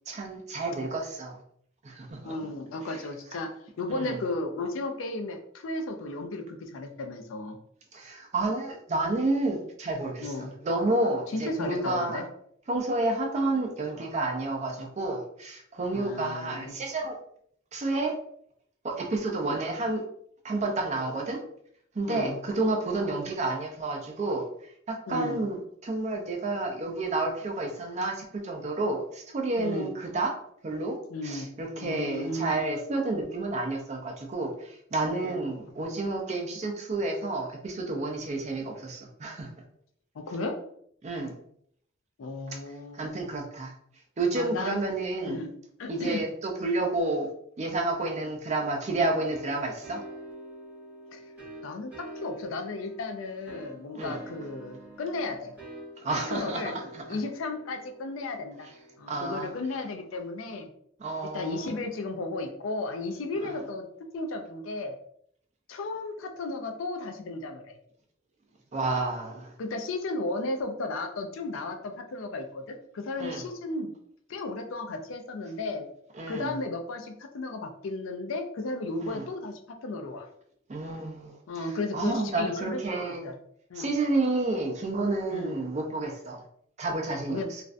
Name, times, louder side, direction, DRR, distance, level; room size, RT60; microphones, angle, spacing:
voice 1, 0.1-1.4 1.8-2.3 3.9-4.2 7.9-10.3 10.6-12.2 12.7-17.2 17.7-18.1 18.8-20.0 20.4-21.4 22.0-24.4 24.9-25.6 25.8-30.3 30.6-31.0 31.2-39.5 41.0-41.3 43.0-43.7 44.2-45.4 45.9-47.3 47.6-50.0 53.9-54.2 56.0-57.0 59.1-59.5 61.0-61.8 63.4-63.5 68.7-69.5 73.2-73.4 76.2-76.5 79.0-79.2 80.7-81.4 81.9-83.3 83.8-86.4 86.8-87.6, right 2 dB, 35° right, 2 dB, 0.4 m, -30 dB
voice 2, 2.2-3.5 3.8-7.6 10.2-10.5 11.3-12.2 15.9-16.8 22.1-22.4 25.1-25.4 29.6-29.9 31.1-31.5 31.8-32.5 35.2-35.4 40.2-40.6 42.2-43.2 44.3-44.8 45.3-45.5 45.8-46.2 51.1-51.2 51.6-55.5 56.1-56.7 57.1-58.7 59.0-60.7 61.2-63.8 64.1-65.0 65.7-67.8 69.6-73.9 74.3-75.9 76.3-80.3 81.5-83.4 83.7-83.9 85.3-85.6 87.3-87.5, left 2 dB, 85° left, 5 dB, 0.4 m, -34 dB
sound 1, 49.3-59.8, right 1 dB, 10° right, 0.8 m, -46 dB
2.4 x 2.1 x 2.4 m, 0.67 s
head